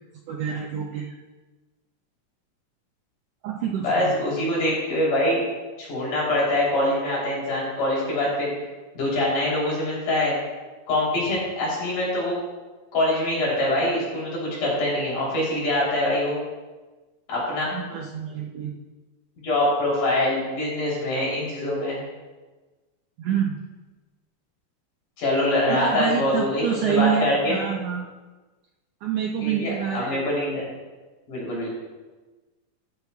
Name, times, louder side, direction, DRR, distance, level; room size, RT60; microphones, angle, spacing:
voice 1, 0.3-1.2 3.4-4.1 17.7-18.8 23.2-23.6 25.7-28.1 29.0-30.4, right 9 dB, 80° right, 1 dB, 1.4 m, -27 dB
voice 2, 3.8-5.4 5.8-8.5 8.9-10.3 10.9-12.4 12.9-16.4 17.3-17.7 19.4-22.0 25.2-27.6 29.4-30.6 31.3-31.7, left 1 dB, 80° left, -5 dB, 4.8 m, -24 dB
14.0 x 11.0 x 2.3 m, 1.2 s
omnidirectional pair, 3.6 m